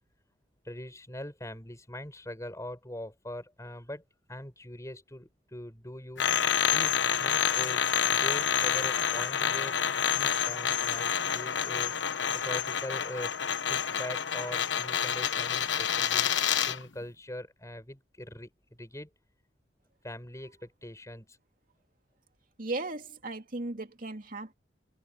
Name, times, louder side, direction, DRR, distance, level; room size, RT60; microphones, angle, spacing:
voice 1, 0.6-4.0 4.3-6.3 6.7-16.3 16.6-19.1 20.0-21.4, left 1 dB, 15° left, 6.6 m, -42 dB
sound 1, 6.2-16.8, left 8 dB, 80° left, 1.1 m, -28 dB
voice 2, 22.6-24.5, right 2 dB, 45° right, 2.7 m, -36 dB
head